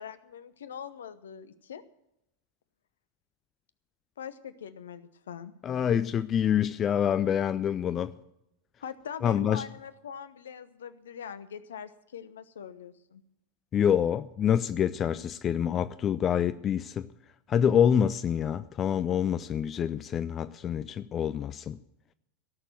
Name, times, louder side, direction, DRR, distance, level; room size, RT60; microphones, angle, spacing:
voice 1, 0.0-1.8 4.2-5.5 8.8-13.2, left 8 dB, 65° left, 15 dB, 0.8 m, -42 dB
voice 2, 5.6-8.1 9.2-9.6 13.7-17.1 17.5-21.8, left 9 dB, 25° left, 15 dB, 0.4 m, -26 dB
17.0 x 6.7 x 9.0 m, 0.84 s
figure-of-eight pair, 90°, 0 cm